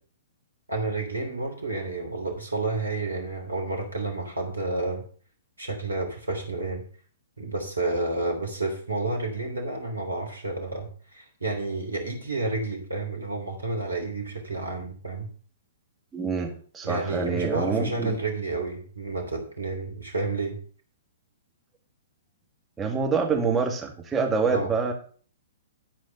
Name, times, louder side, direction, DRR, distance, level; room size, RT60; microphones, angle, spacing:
voice 1, 0.7-5.0 5.6-6.8 7.4-15.3 16.8-20.6 24.5-24.7, right 2 dB, 80° right, 3 dB, 3.3 m, -30 dB
voice 2, 16.1-18.1 22.8-24.9, right 5 dB, 10° right, 1 dB, 2.2 m, -26 dB
12.0 x 4.9 x 6.8 m, 0.44 s
figure-of-eight pair, 115°, 0 cm